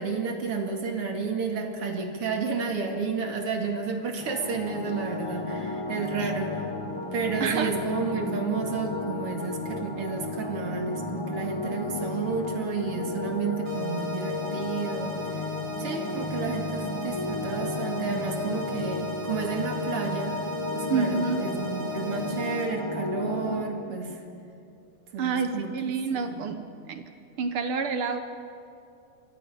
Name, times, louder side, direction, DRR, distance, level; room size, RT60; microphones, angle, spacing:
voice 1, 0.0-6.6 7.1-15.5 15.8-24.2 25.1-25.7 26.1-26.6, right 5 dB, 50° right, 3 dB, 2.7 m, -31 dB
sound 1, 4.2-23.6, left 2 dB, 20° left, 0.7 m, -33 dB
voice 2, 7.4-7.7 20.9-21.4 25.2-26.6 26.9-27.1 27.4-28.2, right 5 dB, 70° right, 7 dB, 1.3 m, -28 dB
sound 2, 13.7-22.7, equal, 90° right, 4.4 m, -38 dB
27.5 x 24.5 x 5.6 m, 2.6 s
omnidirectional pair, 3.7 m